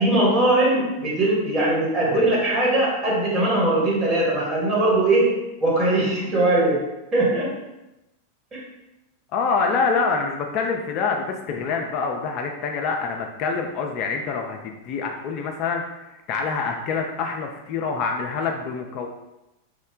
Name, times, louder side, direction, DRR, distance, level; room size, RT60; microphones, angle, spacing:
voice 1, 0.0-6.8 7.1-7.6 8.5-8.6, right 2 dB, 25° right, -5 dB, 1.2 m, -20 dB
voice 2, 9.3-19.1, left 5 dB, 40° left, 2 dB, 0.3 m, -26 dB
3.1 x 2.1 x 3.7 m, 0.94 s
figure-of-eight pair, 90°, 0 cm